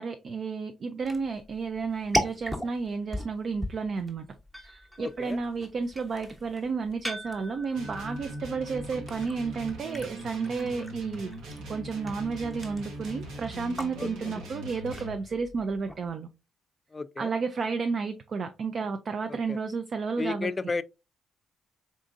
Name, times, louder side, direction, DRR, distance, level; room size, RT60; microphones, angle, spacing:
voice 1, 0.0-4.3 4.6-11.3 11.7-16.3 17.2-20.5, right 4 dB, 50° right, 0.4 m, -32 dB
sound 1, 1.0-16.1, equal, 10° right, 0.9 m, -39 dB
voice 2, 5.0-5.4 14.0-14.3 16.9-17.3 19.3-19.6 20.2-20.8, left 3 dB, 25° left, 0.3 m, -33 dB
sound 2, 7.7-15.2, right 1 dB, 85° right, 1.2 m, -41 dB
3.8 x 3.6 x 2.5 m
cardioid pair, 90°, 0 cm